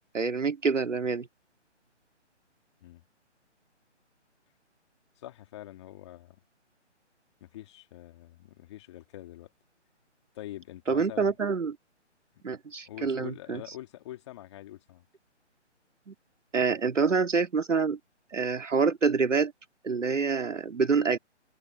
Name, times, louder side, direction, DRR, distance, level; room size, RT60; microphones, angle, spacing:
voice 1, 0.1-1.3 10.9-11.8 12.4-13.6 16.1-16.2 16.5-18.0 18.3-19.5 19.8-21.2, right 5 dB, 85° right, 2.1 m, -26 dB
voice 2, 5.2-6.4 7.4-9.5 10.3-11.3 12.9-15.0, left 14 dB, 25° left, 2.3 m, -45 dB
open air
hypercardioid pair, 160°, 36 cm